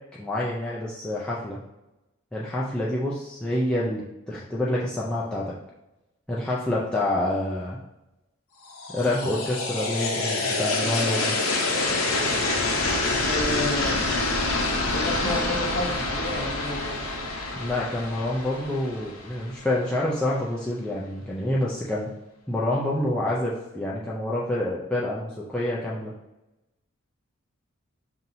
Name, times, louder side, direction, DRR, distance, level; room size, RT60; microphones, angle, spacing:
voice 1, 0.2-1.6 2.3-5.5 6.3-7.8 8.9-11.3 17.6-22.1 22.5-26.1, left 1 dB, 5° left, -7 dB, 0.4 m, -27 dB
sound 1, 8.7-19.7, left 2 dB, 75° left, 0.7 m, -27 dB
voice 2, 13.3-14.2 14.5-17.1, left 1 dB, 35° left, -1 dB, 0.8 m, -31 dB
5.7 x 2.7 x 2.6 m, 0.94 s
head